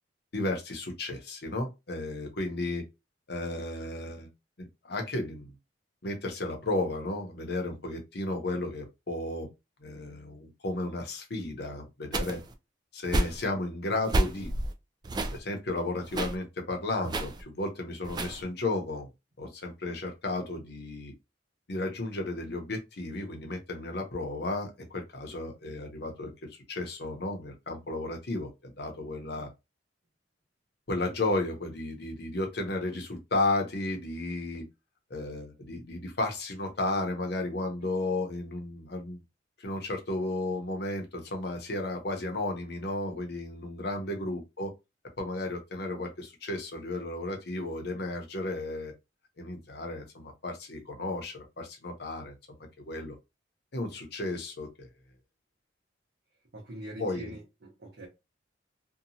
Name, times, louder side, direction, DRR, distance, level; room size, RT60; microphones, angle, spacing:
voice 1, 0.3-2.8 3.3-4.3 4.6-5.5 6.0-9.5 9.8-12.4 12.9-14.5 15.3-19.1 19.4-21.1 21.7-26.3 26.7-29.5 30.9-34.6 35.1-39.2 39.6-44.7 45.2-48.9 49.4-52.4 52.9-53.1 53.7-54.9 57.0-57.4, left 2 dB, 60° left, 0.8 m, -33 dB
sound 1, 12.1-12.5 13.0-13.5 14.0-14.7 15.0-15.4 16.0-16.4 17.0-17.4 18.0-18.4, right 1 dB, 25° right, 0.3 m, -30 dB
voice 2, 56.5-58.1, right 1 dB, 65° right, 0.9 m, -43 dB
2.8 x 2.2 x 2.7 m
head